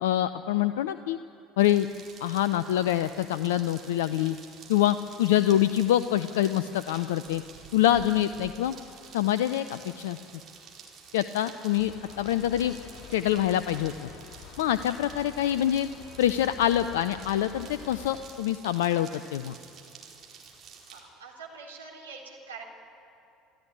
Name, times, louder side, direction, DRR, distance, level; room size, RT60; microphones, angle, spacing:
voice 1, 0.0-1.2 1.6-1.9 2.2-4.4 4.7-7.4 7.7-8.7 9.1-10.2 11.1-12.7 13.1-14.1 14.6-15.9 16.2-19.5, left 12 dB, 70° left, 13 dB, 0.6 m, -25 dB
sound 1, 1.6-21.0, right 6 dB, 45° right, 4.7 m, -50 dB
sound 2, 11.8-18.2, left 7 dB, 50° left, 3.8 m, -48 dB
voice 2, 20.9-22.6, right 5 dB, 80° right, -2 dB, 3.9 m, -44 dB
27.0 x 14.5 x 10.0 m, 2.7 s
figure-of-eight pair, 60°, 0 cm